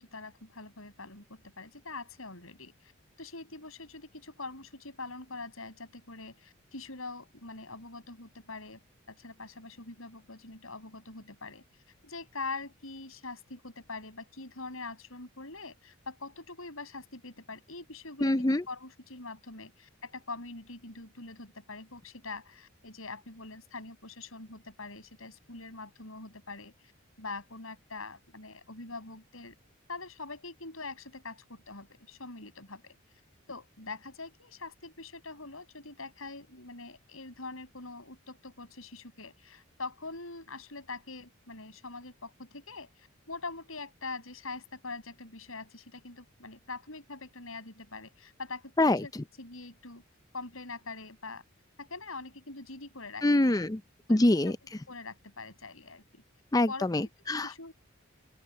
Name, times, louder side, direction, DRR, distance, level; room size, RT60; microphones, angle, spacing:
voice 1, 0.0-2.9 3.2-8.8 9.1-11.6 12.0-26.7 27.2-29.5 29.9-33.0 33.5-49.1 49.4-50.0 50.3-51.4 51.8-53.2 54.1-54.5 54.9-56.2 56.7-56.9 57.4-57.7, left 3 dB, 75° left, 6.8 m, -43 dB
voice 2, 18.2-18.6 48.8-49.0 53.2-53.8 54.1-54.6 56.5-57.5, left 1 dB, 15° left, 0.5 m, -25 dB
open air
head